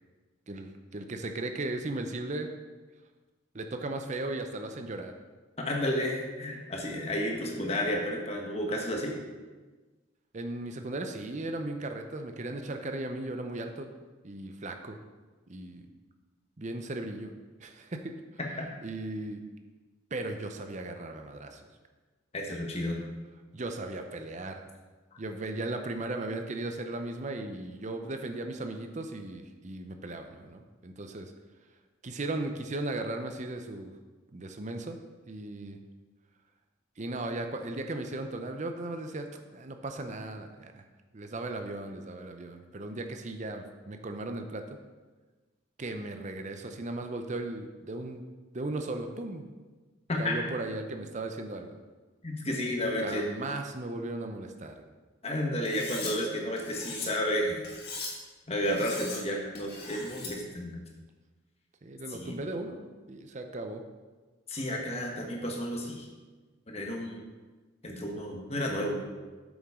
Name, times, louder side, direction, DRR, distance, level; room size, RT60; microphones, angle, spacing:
voice 1, 0.5-2.5 3.5-5.1 10.3-13.9 14.2-15.0 15.5-15.9 16.6-17.3 17.6-18.1 18.8-19.4 20.1-21.6 23.5-24.6 25.2-31.3 32.0-33.9 34.3-35.0 35.3-35.8 37.0-39.3 39.5-40.8 41.1-44.6 45.8-48.2 48.5-49.5 50.2-51.8 53.0-54.7 61.8-63.8, right 2 dB, 35° right, 6 dB, 0.6 m, -36 dB
voice 2, 5.6-9.1 18.4-18.7 22.3-23.0 50.1-50.5 52.2-53.3 55.2-57.6 58.5-60.8 62.1-62.4 64.5-66.1 66.7-67.2 67.8-69.0, left 1 dB, 30° left, 0 dB, 1.3 m, -32 dB
Cutlery silverware, 55.7-56.1 56.6-57.1 57.6-58.1 58.6-59.2 59.6-60.3, left 4 dB, 50° left, 2.1 m, -39 dB
8.8 x 7.2 x 3.7 m, 1.3 s
head